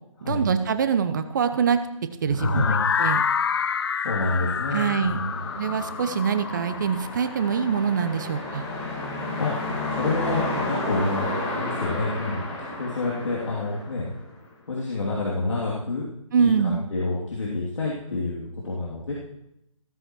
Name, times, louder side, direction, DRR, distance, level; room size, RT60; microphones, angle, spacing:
voice 1, 0.2-1.8 2.2-3.2 4.7-5.2 5.5-8.6 16.3-16.8, right 7 dB, 35° right, 10 dB, 0.8 m, -24 dB
voice 2, 2.3-2.8 4.0-5.3 9.4-9.5 9.9-12.4 12.8-14.0 14.7-16.1 16.4-19.1, left 3 dB, 60° left, -5 dB, 2.8 m, -28 dB
sound 1, 2.4-8.3, left 6 dB, 45° left, 0.4 m, -28 dB
sound 2, 4.2-14.4, left 2 dB, 15° left, 1.9 m, -32 dB
15.0 x 13.5 x 3.1 m, 0.81 s
figure-of-eight pair, 150°, 18 cm